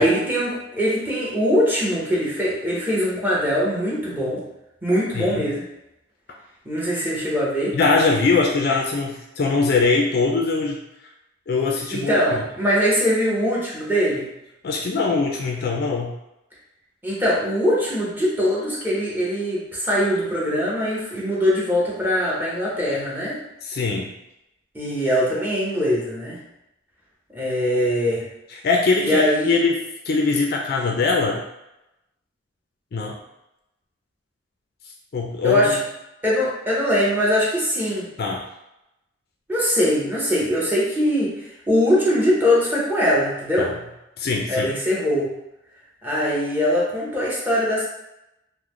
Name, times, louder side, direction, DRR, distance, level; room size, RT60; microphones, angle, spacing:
voice 1, 0.0-4.4 4.8-5.6 6.6-7.8 11.9-14.3 17.0-23.4 24.7-26.4 27.3-28.3 29.0-29.6 35.4-35.8 36.2-38.1 39.5-43.7 44.5-45.3 46.0-47.8, equal, 10° right, -6 dB, 0.9 m, -22 dB
voice 2, 5.1-5.5 7.7-10.8 11.5-12.2 14.6-16.1 23.6-24.1 28.5-31.4 32.9-33.2 35.1-35.8 38.2-38.4 43.6-43.8 44.2-44.7, left 4 dB, 55° left, 0 dB, 0.4 m, -22 dB
3.8 x 2.1 x 3.1 m, 0.90 s
head